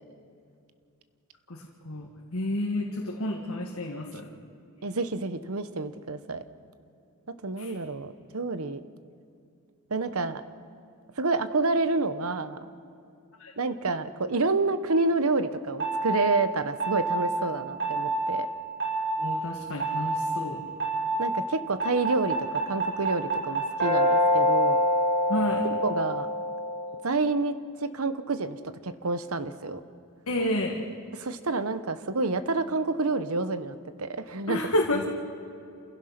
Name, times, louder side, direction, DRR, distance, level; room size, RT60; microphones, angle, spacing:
voice 1, 1.5-4.3 7.6-7.7 13.4-13.5 19.2-20.7 25.3-25.7 30.3-30.8 34.5-35.0, left 1 dB, 65° left, 0 dB, 1.8 m, -30 dB
voice 2, 4.8-6.4 7.4-8.8 9.9-10.4 11.2-12.7 13.6-18.5 21.2-24.8 25.8-26.3 27.0-27.5 27.8-28.6 28.8-29.8 31.1-34.6, right 3 dB, 70° right, 11 dB, 1.1 m, -28 dB
sound 1, 15.8-16.2 16.8-17.2 17.8-18.2 18.8-19.1 19.8-20.2 20.8-21.2 21.8-26.9, equal, 55° right, 6.3 m, -26 dB
28.5 x 16.0 x 6.0 m, 2.5 s
head